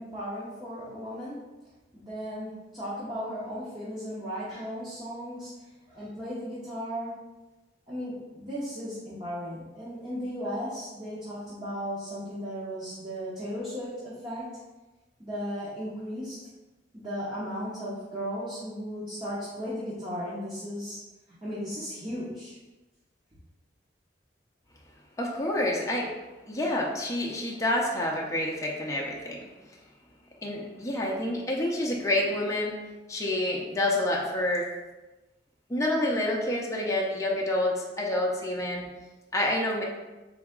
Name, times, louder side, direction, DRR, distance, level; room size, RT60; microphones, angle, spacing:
voice 1, 0.0-1.4 1.9-5.5 5.9-7.2 7.9-14.5 15.2-16.4 16.9-21.0 21.4-22.5, equal, 25° right, -9 dB, 1.0 m, -36 dB
voice 2, 25.2-26.1 26.5-29.4 30.4-32.8 33.1-34.7 35.7-38.8 39.3-39.8, left 1 dB, 20° left, -2 dB, 0.6 m, -28 dB
4.0 x 3.5 x 3.6 m, 1.1 s
head